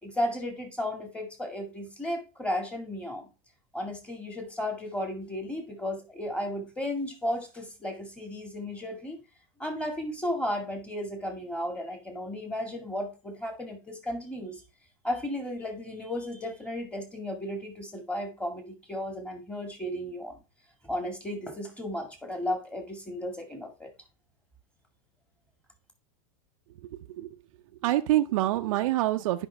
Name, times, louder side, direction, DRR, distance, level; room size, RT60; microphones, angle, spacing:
voice 1, 0.0-3.3 3.7-9.2 9.6-14.6 15.0-20.4 20.8-23.9, left 1 dB, 5° left, 2.1 m, -34 dB
voice 2, 26.9-27.3 27.8-29.5, right 15 dB, 70° right, 0.6 m, -26 dB
10.0 x 5.3 x 3.4 m
supercardioid pair, 135°, 18 cm